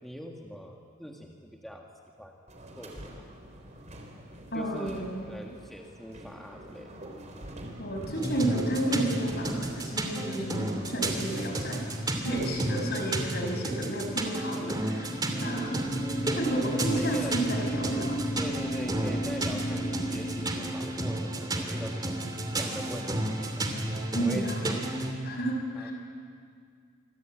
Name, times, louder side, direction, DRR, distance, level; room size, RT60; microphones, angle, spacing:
voice 1, 0.0-1.9 2.2-2.3 2.8-3.1 4.5-7.1 14.9-15.9 16.7-17.4 18.4-23.7 24.0-25.0 25.7-25.9, equal, ahead, 0 dB, 1.7 m, -42 dB
sound 1, 2.5-13.1, right 1 dB, 35° right, 4.1 m, -46 dB
voice 2, 4.5-5.2 7.8-11.9 12.2-15.1 15.4-15.8 16.3-18.2 24.1-24.5 25.2-25.9, right 1 dB, 50° left, 2 dB, 6.0 m, -31 dB
sound 2, 8.0-8.4 14.5-20.6, equal, 35° left, 1.3 m, -35 dB
sound 3, 8.1-25.1, right 1 dB, 20° right, 2.6 m, -32 dB
26.0 x 25.0 x 9.0 m, 2.2 s
head